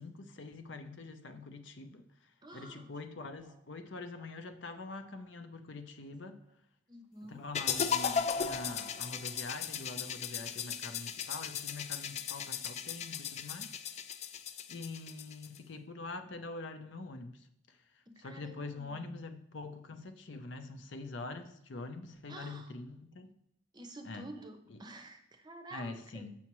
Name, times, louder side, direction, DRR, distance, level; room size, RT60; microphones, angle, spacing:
voice 1, 0.0-6.4 7.3-13.7 14.7-17.8 18.2-23.3 24.1-24.3 24.7-24.8 25.7-26.4, left 3 dB, 70° left, 0.7 m, -45 dB
voice 2, 2.4-3.6 4.2-4.3 4.9-5.3 6.9-8.0 18.1-19.2 22.3-22.7 23.7-26.3, right 1 dB, 20° right, 0.6 m, -51 dB
sound 1, 7.5-15.6, left 7 dB, 35° left, 0.3 m, -36 dB
7.0 x 5.8 x 3.1 m
head